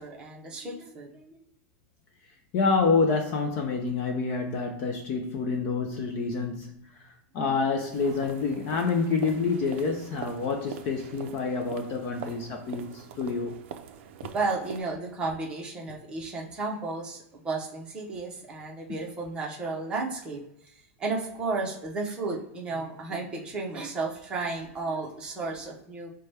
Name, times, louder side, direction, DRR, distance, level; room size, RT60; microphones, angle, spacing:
voice 1, 0.0-1.3 14.3-20.4 20.7-26.1, right 3 dB, 10° right, 0.7 m, -33 dB
voice 2, 2.5-13.6, left 4 dB, 25° left, 0.4 m, -28 dB
sound 1, 7.9-14.8, right 8 dB, 55° right, 0.5 m, -43 dB
5.7 x 2.2 x 3.2 m
supercardioid pair, 180°, 7 cm